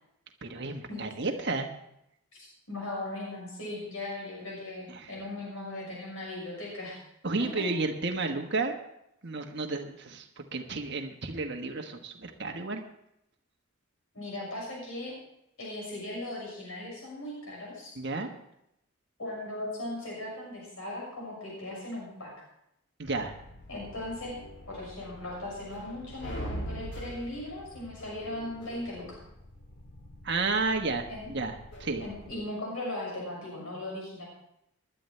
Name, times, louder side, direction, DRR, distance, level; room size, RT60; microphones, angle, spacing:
voice 1, 0.4-1.7 4.9-5.1 7.2-8.7 9.2-12.8 17.9-18.3 23.0-23.3 30.2-31.5 31.8-32.0, right 3 dB, 50° right, 3 dB, 1.4 m, -32 dB
voice 2, 2.3-7.0 7.6-7.7 14.1-15.1 15.6-17.9 19.2-22.3 23.7-24.3 24.7-29.2 31.1-31.3 32.0-34.3, left 1 dB, 70° left, -3 dB, 6.3 m, -38 dB
sound 1, 23.0-32.3, equal, 50° left, 2.6 m, -44 dB
20.5 x 11.5 x 3.3 m, 0.79 s
head